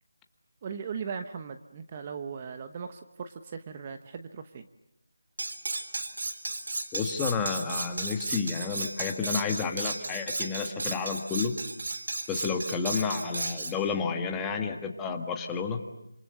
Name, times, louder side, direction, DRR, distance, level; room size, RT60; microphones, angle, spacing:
voice 1, 0.6-4.7, right 6 dB, 25° right, 8 dB, 1.0 m, -38 dB
Cutlery silverware, 5.4-13.8, right 2 dB, 65° right, 3.5 m, -34 dB
voice 2, 6.9-11.5 12.3-15.8, left 5 dB, 10° left, 3 dB, 1.6 m, -31 dB
27.5 x 27.0 x 7.9 m, 0.85 s
figure-of-eight pair, 170°, 0 cm